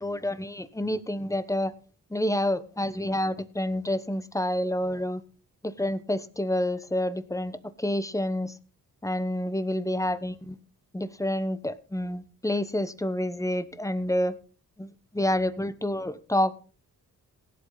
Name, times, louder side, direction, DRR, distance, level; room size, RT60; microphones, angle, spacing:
voice 1, 0.0-1.7 2.1-5.2 5.6-8.5 9.0-10.5 10.9-14.3 14.8-14.9 15.1-16.5, left 1 dB, 10° left, 14 dB, 1.0 m, -28 dB
17.5 x 8.2 x 4.0 m, 0.37 s
cardioid pair, 85°, 36 cm